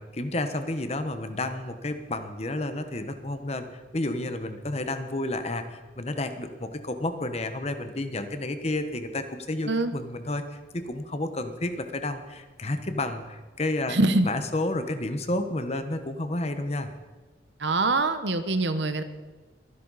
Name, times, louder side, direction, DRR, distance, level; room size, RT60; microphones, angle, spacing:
voice 1, 0.0-14.0 14.2-16.9, left 2 dB, 35° left, 8 dB, 1.1 m, -31 dB
voice 2, 13.9-14.3 17.6-19.0, right 2 dB, 70° right, 10 dB, 1.0 m, -24 dB
22.5 x 11.0 x 4.1 m, 1.3 s
head